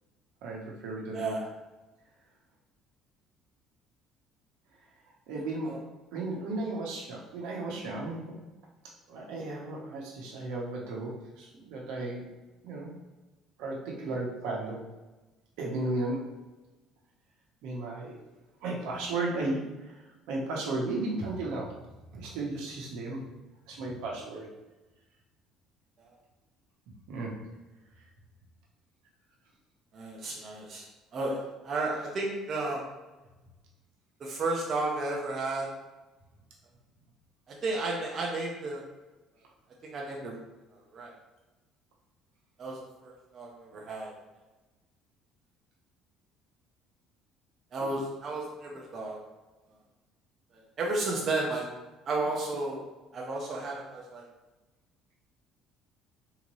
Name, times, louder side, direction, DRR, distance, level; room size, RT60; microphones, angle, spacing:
voice 1, 0.4-1.4 5.3-5.8 6.1-8.3 9.1-12.3 12.6-12.9 13.6-14.9 15.6-16.2 17.6-18.1 18.6-21.7 22.1-23.2 23.7-24.5 26.9-27.3, right 2 dB, 80° right, -2 dB, 1.0 m, -34 dB
voice 2, 5.3-5.8 26.1-26.2 29.9-30.9 31.1-32.8 34.2-35.7 37.5-38.8 39.8-40.4 40.9-41.1 42.6-44.1 47.7-49.2 50.5-51.6 52.0-52.8 53.1-54.3, right 2 dB, 35° right, -3 dB, 0.7 m, -33 dB
3.8 x 2.9 x 3.1 m, 1.1 s
cardioid pair, 150°, 0 cm